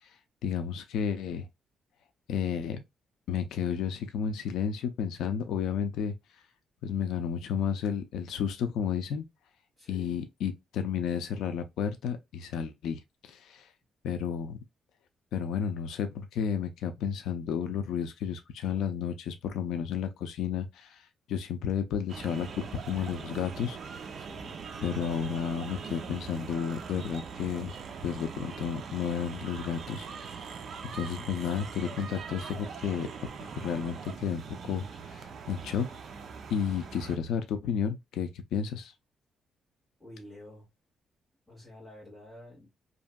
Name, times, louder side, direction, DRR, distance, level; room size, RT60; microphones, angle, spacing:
voice 1, 0.4-1.5 2.3-2.8 3.3-6.1 6.8-9.3 9.9-13.7 14.0-14.6 15.3-24.1 24.8-27.8 28.0-30.5 30.9-33.1 33.6-35.9 36.5-38.9, left 7 dB, 90° left, 0.4 m, -32 dB
voice 2, 9.8-10.2 24.1-24.6 40.0-40.7 41.5-42.7, left 1 dB, 5° left, 1.6 m, -49 dB
sound 1, 22.1-37.2, right 6 dB, 45° right, 0.4 m, -42 dB
2.8 x 2.6 x 2.2 m
cardioid pair, 170°, 0 cm